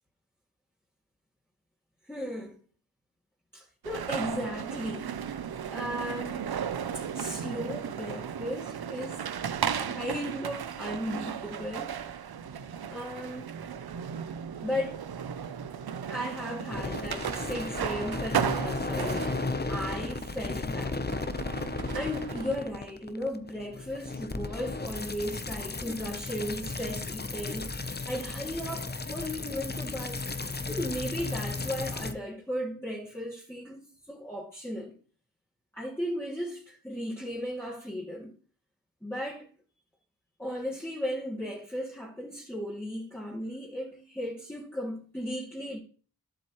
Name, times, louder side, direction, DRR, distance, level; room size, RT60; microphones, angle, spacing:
voice 1, 2.1-2.5 3.5-5.1 5.7-6.5 6.9-9.3 9.8-11.9 12.9-13.5 14.6-15.1 16.0-19.3 19.7-21.0 21.9-34.9 35.7-38.3 39.0-39.5 40.4-45.8, equal, 5° left, 2.3 m, -36 dB
sound 1, 3.8-22.6, right 8 dB, 85° right, 0.6 m, -35 dB
sound 2, 16.7-32.1, left 3 dB, 25° left, 0.8 m, -35 dB
11.5 x 7.6 x 3.1 m
wide cardioid pair, 55°, 37 cm